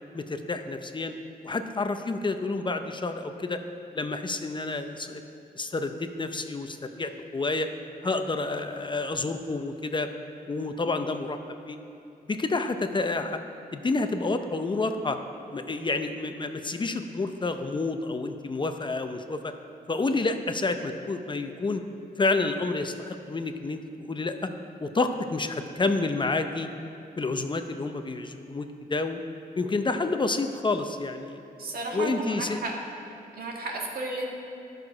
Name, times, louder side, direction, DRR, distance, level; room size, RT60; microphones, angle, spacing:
voice 1, 0.1-1.1 1.4-3.6 3.9-5.2 5.5-7.7 8.0-10.1 10.5-11.4 11.7-11.8 12.3-13.4 13.7-15.2 15.5-19.5 19.9-21.8 22.2-24.5 24.8-26.7 27.2-29.2 29.6-31.4 31.9-32.6, left 3 dB, 30° left, 7 dB, 0.6 m, -29 dB
voice 2, 31.6-32.7 33.4-34.2, right 2 dB, 70° right, -1 dB, 1.8 m, -33 dB
12.0 x 6.6 x 4.8 m, 2.7 s
cardioid pair, 85°, 16 cm